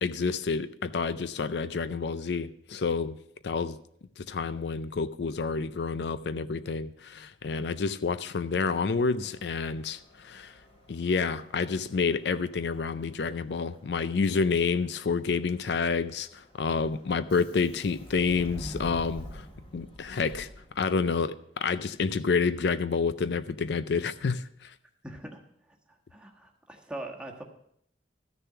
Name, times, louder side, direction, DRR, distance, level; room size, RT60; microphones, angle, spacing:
voice 1, 0.0-3.2 3.4-3.8 4.2-10.5 10.9-19.5 19.7-20.5 20.8-24.7, left 5 dB, 70° left, 0.4 m, -29 dB
Subway metro underground, 9.2-21.1, equal, 35° left, 2.6 m, -48 dB
voice 2, 25.0-25.4 25.7-27.4, right 1 dB, 5° right, 1.4 m, -42 dB
13.5 x 6.8 x 5.8 m
head